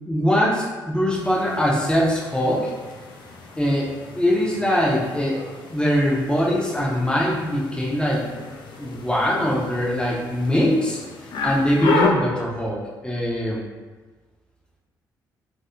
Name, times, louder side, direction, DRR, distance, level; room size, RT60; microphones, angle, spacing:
voice 1, 0.1-2.7 3.6-5.4 5.7-8.3 8.8-11.0 11.4-12.8 13.0-13.6, equal, 10° left, -4 dB, 0.7 m, -22 dB
sound 1, 1.1-12.1, left 4 dB, 45° left, 0.4 m, -32 dB
3.4 x 2.6 x 2.2 m, 1.3 s
figure-of-eight pair, 45°, 11 cm